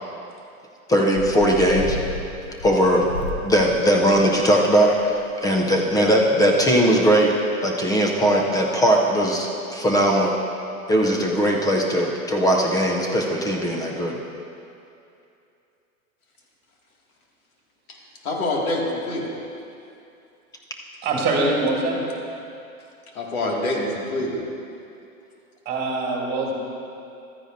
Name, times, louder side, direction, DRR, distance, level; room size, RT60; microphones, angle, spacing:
voice 1, 0.9-2.0 2.6-3.0 3.4-7.3 7.6-10.3 10.9-14.1, equal, 10° left, 0 dB, 0.5 m, -19 dB
sound 1, 1.1-4.4 4.7-5.3 5.5-5.6 5.8-6.0, left 3 dB, 60° left, 1.2 m, -33 dB
voice 2, 18.2-19.3 23.1-24.4, left 1 dB, 80° left, -2 dB, 2.3 m, -25 dB
voice 3, 21.0-22.0 25.7-26.5, right 2 dB, 20° right, -2 dB, 2.1 m, -23 dB
13.5 x 9.8 x 2.6 m, 2.7 s
hypercardioid pair, 130°, 43 cm